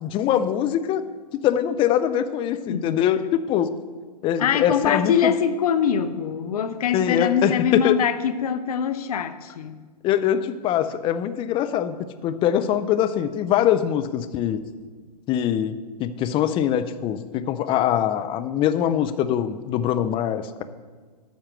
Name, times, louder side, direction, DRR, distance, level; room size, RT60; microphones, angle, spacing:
voice 1, 0.0-1.0 1.4-3.7 4.2-5.3 6.9-8.0 10.0-11.9 12.2-14.6 15.3-20.6, left 10 dB, 25° left, 11 dB, 0.5 m, -23 dB
voice 2, 4.4-9.8, left 7 dB, 65° left, 11 dB, 0.7 m, -23 dB
12.5 x 4.4 x 7.5 m, 1.5 s
hypercardioid pair, 115°, 21 cm